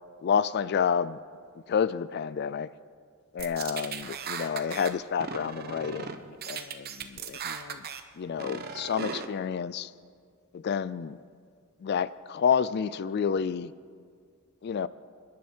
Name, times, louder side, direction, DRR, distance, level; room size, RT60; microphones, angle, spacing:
voice 1, 0.2-1.2 1.7-2.7 3.3-7.9 8.2-9.9 10.5-11.2 11.8-13.7 14.6-14.9, left 7 dB, 50° left, 17 dB, 0.3 m, -29 dB
sound 1, 3.4-4.9 5.2-6.1 6.4-8.0 8.4-9.2, right 6 dB, 45° right, 0.9 m, -37 dB
28.5 x 10.5 x 4.4 m, 2.1 s
head